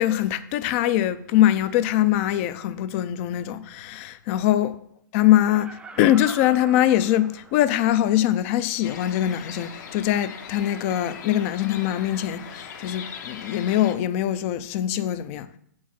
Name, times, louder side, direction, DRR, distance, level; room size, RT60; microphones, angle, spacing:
voice 1, 0.0-4.7 5.1-15.5, left 12 dB, 40° left, 0.5 m, -22 dB
Laughter, 5.3-7.9 8.4-8.5, right 3 dB, 10° right, 0.6 m, -42 dB
sound 1, 8.8-13.9, left 7 dB, 55° left, 1.1 m, -40 dB
7.2 x 4.7 x 5.8 m
hypercardioid pair, 135°, 11 cm